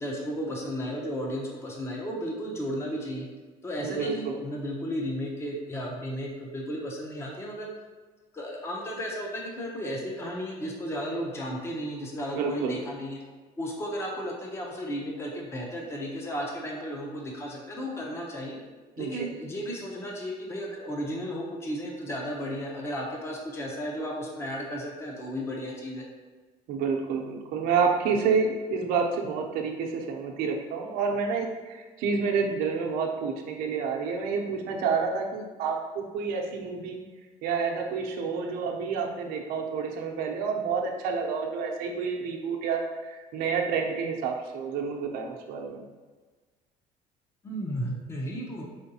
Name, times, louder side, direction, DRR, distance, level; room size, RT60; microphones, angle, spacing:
voice 1, 0.0-3.3 3.6-7.7 8.3-13.2 13.6-18.6 19.0-26.0 47.4-48.7, equal, 15° left, -1 dB, 0.7 m, -34 dB
voice 2, 3.8-4.4 12.3-12.8 19.0-19.2 26.7-37.0 37.4-45.8, right 5 dB, 85° right, 2 dB, 0.7 m, -29 dB
5.0 x 3.8 x 2.8 m, 1.3 s
cardioid pair, 155°, 15 cm